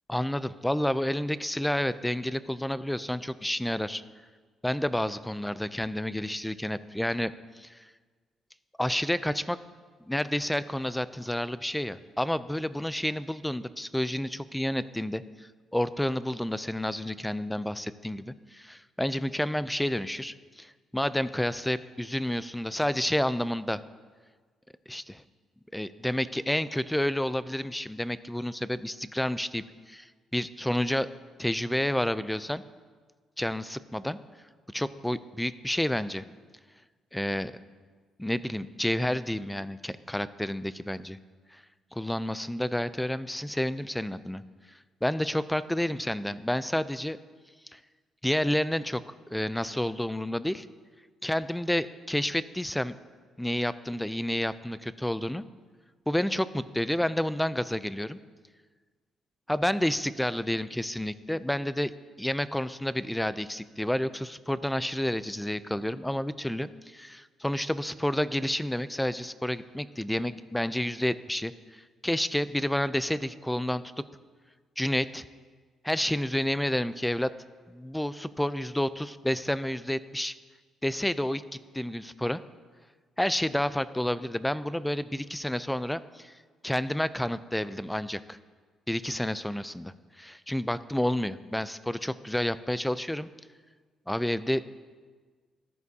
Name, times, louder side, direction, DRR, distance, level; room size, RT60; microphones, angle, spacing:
voice 1, 0.1-4.0 4.6-7.9 8.8-9.6 10.0-23.8 24.9-25.2 25.7-31.1 31.4-32.6 33.4-34.2 34.7-36.3 37.1-37.5 38.2-41.2 41.5-41.6 41.9-44.4 44.7-47.2 47.7-47.8 48.2-49.0 49.3-50.7 51.2-52.9 53.4-55.4 56.1-58.2 59.5-61.9 62.2-73.8 74.8-75.3 75.8-77.3 77.7-80.3 80.8-82.4 83.2-86.4 86.6-88.4 88.9-93.3 94.1-94.6, left 1 dB, 5° left, 15 dB, 0.4 m, -30 dB
14.0 x 10.5 x 2.8 m, 1.5 s
cardioid pair, 90°, 0 cm